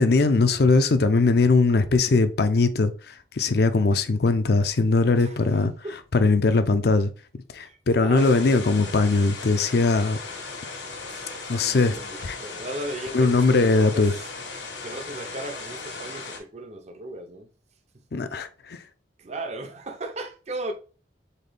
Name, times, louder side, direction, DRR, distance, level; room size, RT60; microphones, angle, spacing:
voice 1, 0.0-5.7 6.1-7.1 7.5-10.2 11.5-12.4 13.1-14.1 18.1-18.8, left 3 dB, 60° left, 0.5 m, -20 dB
voice 2, 5.2-6.0 7.6-8.6 10.9-14.3 14.8-17.5 19.2-20.7, right 1 dB, 40° right, 0.6 m, -37 dB
sound 1, 8.2-16.4, left 4 dB, 85° left, 1.4 m, -37 dB
4.1 x 3.7 x 3.3 m
head